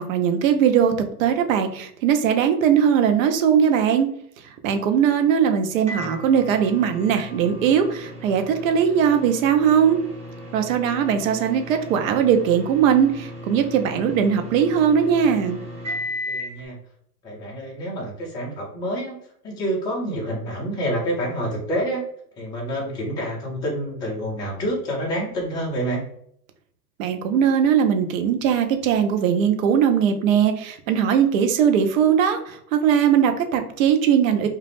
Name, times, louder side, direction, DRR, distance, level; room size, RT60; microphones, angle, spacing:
voice 1, 0.0-4.1 4.6-10.0 10.5-15.6 27.0-34.5, right 8 dB, 55° right, 6 dB, 0.6 m, -20 dB
Microwave oven, 5.9-16.6, left 1 dB, 15° right, 1.0 m, -36 dB
voice 2, 16.3-16.8 17.2-19.1 19.4-22.0 22.4-26.0, equal, 10° left, -3 dB, 0.5 m, -27 dB
2.3 x 2.1 x 3.3 m, 0.68 s
hypercardioid pair, 115°, 49 cm